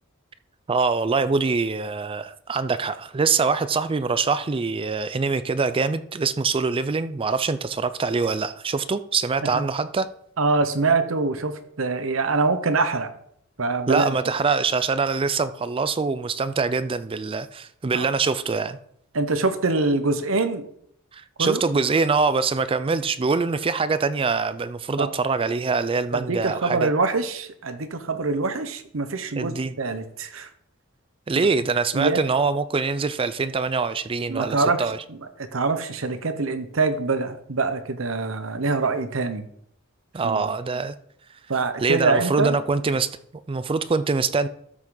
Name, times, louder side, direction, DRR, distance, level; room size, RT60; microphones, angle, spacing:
voice 1, 0.7-10.1 13.9-18.8 21.1-26.9 29.4-29.7 31.3-35.0 40.1-40.9 41.8-43.1 43.5-44.5, right 4 dB, 25° right, 0.4 m, -24 dB
voice 2, 10.4-13.1 13.6-14.2 17.9-18.1 19.1-20.7 21.4-21.6 25.0-25.1 26.1-30.5 31.4-31.5 31.9-32.2 34.3-39.4 40.2-40.4 41.5-42.6, right 3 dB, 75° right, 0.9 m, -24 dB
13.0 x 6.1 x 3.9 m
head